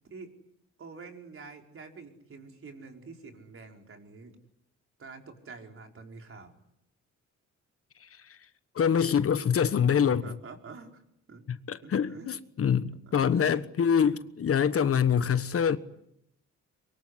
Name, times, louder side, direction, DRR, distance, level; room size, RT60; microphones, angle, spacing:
voice 1, 0.8-4.3 5.0-6.5 10.2-11.0 11.3-11.4 11.8-12.4 13.0-13.6, right 4 dB, 45° right, 5.2 m, -47 dB
voice 2, 8.0-8.4 8.7-10.3 11.5-15.8, left 7 dB, 50° left, 1.3 m, -25 dB
24.5 x 23.5 x 9.9 m
cardioid pair, 90°, 30 cm